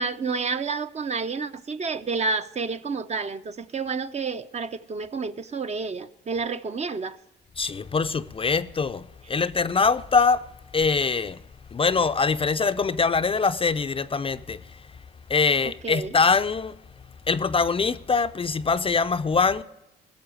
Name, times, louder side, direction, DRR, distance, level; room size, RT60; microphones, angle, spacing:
voice 1, 0.0-7.2 15.8-16.1, right 4 dB, 35° right, 0.6 m, -29 dB
voice 2, 7.6-10.4 10.7-11.4 11.7-14.8 15.3-16.8 17.3-19.6, left 5 dB, 25° left, 0.5 m, -23 dB
16.0 x 6.9 x 7.6 m
cardioid pair, 90°, 20 cm